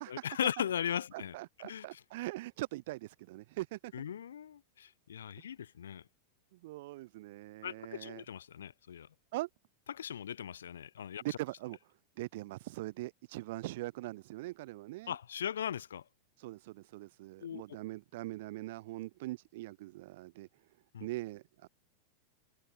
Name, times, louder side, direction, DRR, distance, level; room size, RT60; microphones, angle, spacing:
voice 1, 0.1-1.3 1.6-2.0 3.9-6.0 7.6-9.1 9.9-11.4 15.1-16.1 17.4-17.6 20.9-21.1, left 9 dB, 65° left, 0.4 m, -38 dB
voice 2, 1.1-3.9 6.5-8.2 9.3-9.5 11.2-11.8 12.2-15.1 16.4-20.5 21.0-21.7, right 18 dB, 50° right, 0.6 m, -42 dB
figure-of-eight pair, 90°, 0 cm